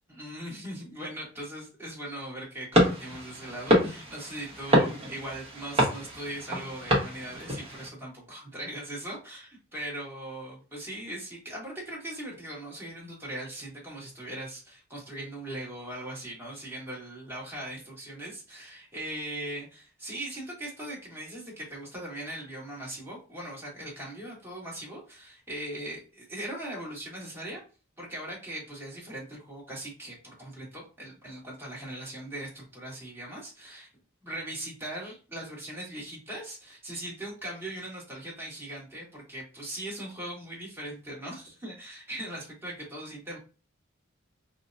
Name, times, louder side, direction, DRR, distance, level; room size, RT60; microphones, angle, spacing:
voice 1, 0.1-27.6 28.0-33.9 34.2-43.4, right 1 dB, 10° right, -5 dB, 1.5 m, -40 dB
sound 1, 2.7-7.9, equal, 30° right, 1.1 m, -27 dB
4.6 x 2.2 x 2.6 m, 0.34 s
head